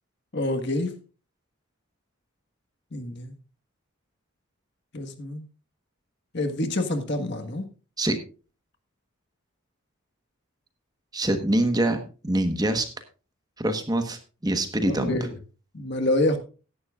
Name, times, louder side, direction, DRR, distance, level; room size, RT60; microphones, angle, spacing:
voice 1, 0.3-0.9 2.9-3.3 4.9-5.4 6.3-7.7 14.9-15.4 15.7-16.4, left 1 dB, 50° left, 1.5 m, -27 dB
voice 2, 11.1-12.0 12.2-12.9 13.6-15.1, right 1 dB, 15° right, 1.2 m, -24 dB
16.5 x 11.0 x 2.4 m
head